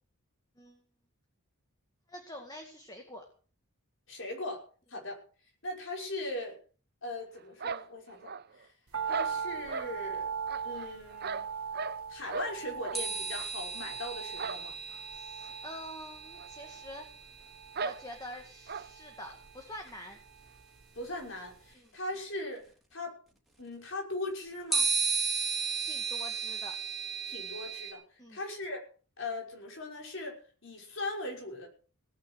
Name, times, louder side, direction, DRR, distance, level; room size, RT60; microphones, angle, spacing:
voice 1, 2.1-3.2 15.1-17.1 17.8-20.2 21.8-21.9 25.8-26.8 28.2-28.4, left 1 dB, 20° left, 4 dB, 2.1 m, -46 dB
voice 2, 4.1-5.2 5.6-6.6 7.0-8.7 9.0-10.3 10.6-11.5 12.1-14.8 20.9-23.1 23.6-24.9 27.3-28.8 29.2-31.7, left 2 dB, 60° left, 1 dB, 5.9 m, -39 dB
sound 1, 7.6-8.6 9.1-9.9 10.5-12.0 12.3-12.5 12.8-13.0 13.3-13.5 14.4-14.7 14.9-15.0 15.4-15.5 16.3-16.5 16.7-16.8 17.7-18.0 18.7-18.9, right 5 dB, 45° right, 0.7 m, -37 dB
sound 2, 8.9-21.2 21.5-21.6, right 6 dB, 80° right, 1.5 m, -41 dB
sound 3, 12.9-18.6 19.9-20.0 24.7-27.9, right 5 dB, ahead, 3.5 m, -35 dB
18.0 x 9.8 x 6.4 m, 0.40 s
head